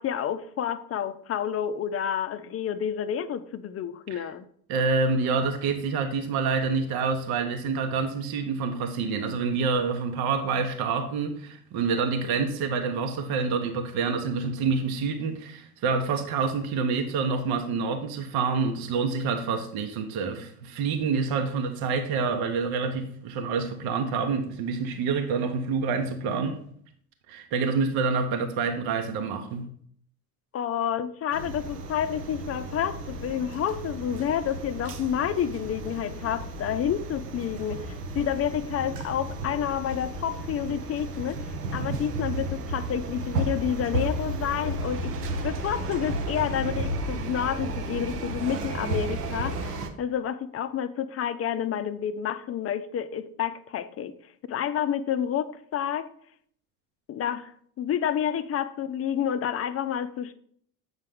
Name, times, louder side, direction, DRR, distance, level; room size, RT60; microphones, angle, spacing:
voice 1, 0.0-4.5 30.5-41.4 41.7-45.1 45.4-54.1 54.5-56.1 57.1-57.5 57.8-60.3, left 9 dB, 30° left, 0.6 m, -29 dB
voice 2, 4.7-26.6 27.3-29.7, right 4 dB, 50° right, 0.9 m, -27 dB
sound 1, 31.3-49.9, right 2 dB, 85° right, 0.8 m, -33 dB
8.0 x 5.4 x 3.6 m
hypercardioid pair, 60°, 45 cm